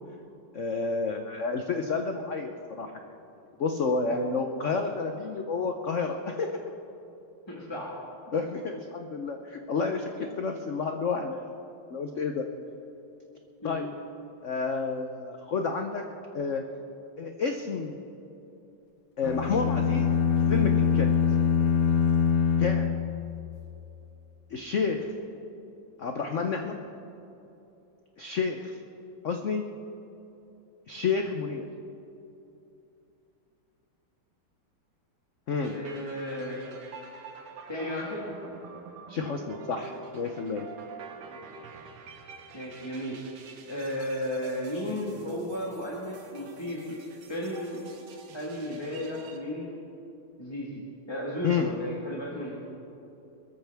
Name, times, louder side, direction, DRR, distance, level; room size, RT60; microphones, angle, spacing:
voice 1, 0.5-2.9 3.6-6.7 8.3-11.4 11.9-12.4 13.6-13.9 14.4-16.0 16.3-16.6 17.2-18.0 19.2-20.1 20.5-21.1 22.6-22.9 24.5-25.1 26.0-26.8 28.2-28.8 29.2-29.6 30.9-31.7 35.5-35.8 39.1-40.7 51.4-51.7, left 4 dB, 85° left, 4 dB, 0.6 m, -30 dB
voice 2, 7.5-7.9 13.6-13.8 35.7-36.6 37.7-38.3 41.2-41.6 42.5-43.2 43.6-47.0 47.3-47.8 48.3-49.7 50.4-50.7 51.1-52.6, left 1 dB, 15° left, -5 dB, 1.4 m, -34 dB
sound 1, 19.2-23.6, left 7 dB, 65° left, 0.9 m, -24 dB
sound 2, 35.6-49.4, right 5 dB, 85° right, 2.0 m, -47 dB
21.5 x 14.0 x 3.5 m, 2.8 s
omnidirectional pair, 2.3 m